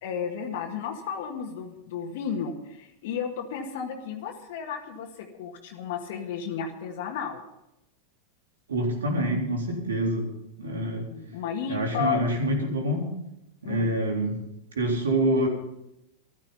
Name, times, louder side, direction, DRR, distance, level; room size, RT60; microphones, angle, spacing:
voice 1, 0.0-7.4 10.6-12.2 13.6-13.9, left 7 dB, 60° left, 2 dB, 1.9 m, -33 dB
voice 2, 8.7-10.3 10.6-11.1 11.7-13.2 13.6-14.4 14.8-15.5, right 1 dB, 75° right, 1 dB, 3.8 m, -26 dB
14.5 x 12.5 x 5.6 m, 0.87 s
figure-of-eight pair, 90°, 0 cm